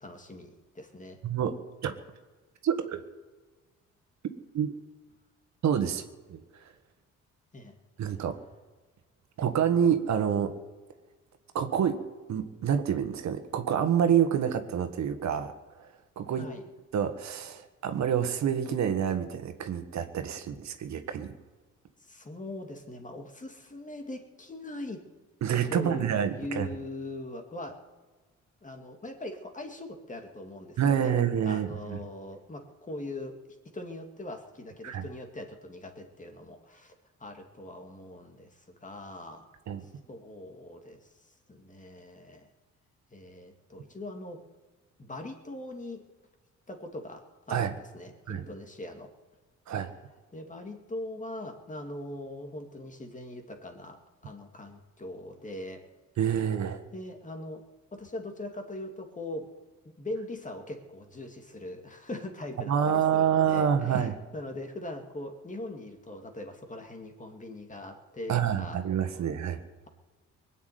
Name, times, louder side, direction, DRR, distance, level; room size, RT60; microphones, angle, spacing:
voice 1, 0.0-1.2 7.5-7.8 16.4-16.6 22.0-25.0 25.7-27.8 28.6-31.1 31.4-33.4 33.7-36.9 37.2-39.5 39.8-41.1 41.5-42.5 43.1-44.4 45.0-46.0 46.7-49.1 50.3-55.8 56.9-57.6 57.9-59.5 60.0-68.8, left 1 dB, 25° left, 5 dB, 2.4 m, -41 dB
voice 2, 1.2-1.5 1.8-1.9 2.6-3.0 4.5-4.7 5.6-6.7 8.0-8.4 9.4-10.5 11.5-12.0 12.3-15.5 15.8-15.9 16.1-16.4 16.9-21.3 25.4-26.7 30.8-32.0 34.8-35.0 39.7-39.8 47.5-47.7 48.3-48.4 49.7-49.9 56.2-56.8 62.6-64.2 68.3-69.6, right 8 dB, 65° right, 7 dB, 1.6 m, -27 dB
20.5 x 7.3 x 9.4 m, 1.3 s
cardioid pair, 90°, 30 cm